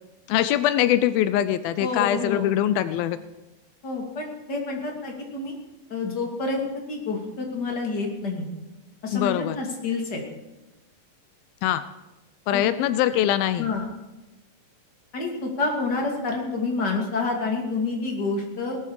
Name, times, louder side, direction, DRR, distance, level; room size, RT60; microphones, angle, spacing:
voice 1, 0.3-3.2 9.1-9.6 11.6-11.9 12.5-13.7, left 12 dB, 85° left, 13 dB, 2.4 m, -23 dB
voice 2, 1.8-2.5 3.8-5.5 5.9-8.5 9.0-10.2 12.5-12.6 13.6-13.8 15.1-18.8, left 3 dB, 30° left, 0 dB, 2.8 m, -28 dB
18.5 x 12.5 x 4.9 m, 1.1 s
omnidirectional pair, 4.2 m